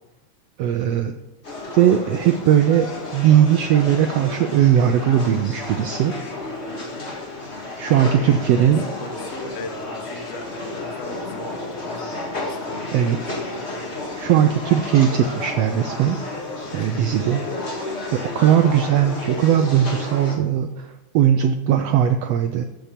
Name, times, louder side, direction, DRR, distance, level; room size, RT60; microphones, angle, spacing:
voice 1, 0.6-1.1 1.7-6.1 7.8-8.9 12.9-13.4 14.2-16.2 16.7-17.4 18.1-22.6, right 10 dB, 85° right, 7 dB, 1.4 m, -19 dB
sound 1, 1.4-20.4, left 2 dB, 30° left, 1.6 m, -32 dB
voice 2, 8.1-13.0 16.7-17.5, left 2 dB, 70° left, 4 dB, 0.7 m, -39 dB
13.5 x 6.0 x 5.1 m, 1.1 s
omnidirectional pair, 3.5 m